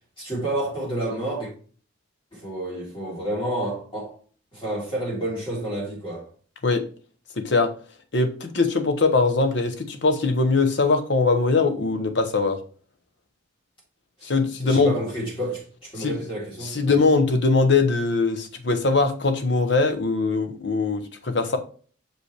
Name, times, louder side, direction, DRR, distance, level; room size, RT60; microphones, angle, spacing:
voice 1, 0.2-1.5 2.3-4.1 4.5-6.3 14.2-14.3 14.6-17.0, right 1 dB, 25° left, 3.3 m, -30 dB
voice 2, 7.4-7.7 8.1-12.6 14.2-14.9 16.0-16.2 16.6-21.6, left 3 dB, 55° left, 0.9 m, -21 dB
6.4 x 5.1 x 3.3 m
head